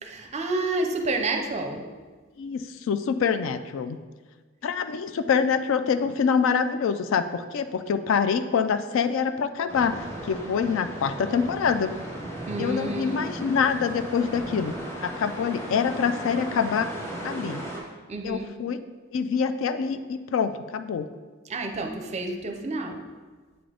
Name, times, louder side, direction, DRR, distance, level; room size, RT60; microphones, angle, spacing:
voice 1, 0.0-1.9 12.5-13.4 18.1-18.6 21.4-23.0, right 2 dB, 30° right, 4 dB, 0.5 m, -30 dB
voice 2, 2.4-4.0 4.6-11.9 12.6-14.7 15.0-16.9 17.2-17.6 18.2-18.8 19.1-21.1, left 6 dB, 65° left, 11 dB, 0.3 m, -25 dB
sound 1, 9.7-17.8, right 1 dB, 10° left, 1.3 m, -36 dB
7.8 x 3.8 x 3.3 m, 1.4 s
head